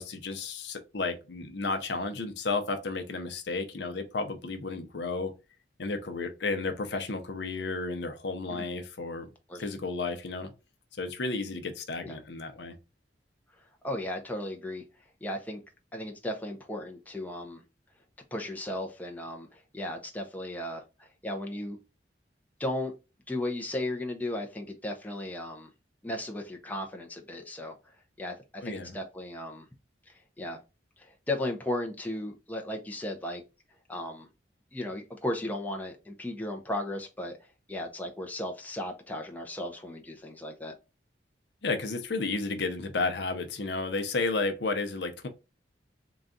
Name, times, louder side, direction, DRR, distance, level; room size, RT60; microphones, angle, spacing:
voice 1, 0.0-5.3 5.8-9.3 9.5-10.5 11.0-12.7 28.6-29.0 41.6-45.3, left 3 dB, 65° left, 0.7 m, -32 dB
voice 2, 13.8-14.8 15.2-15.6 15.9-17.6 18.3-21.8 22.6-22.9 23.3-25.7 26.0-27.8 28.2-29.7 30.1-30.6 31.0-33.4 33.9-34.3 34.7-37.4 37.7-40.7, left 1 dB, 10° left, 0.6 m, -35 dB
3.9 x 2.3 x 3.7 m
head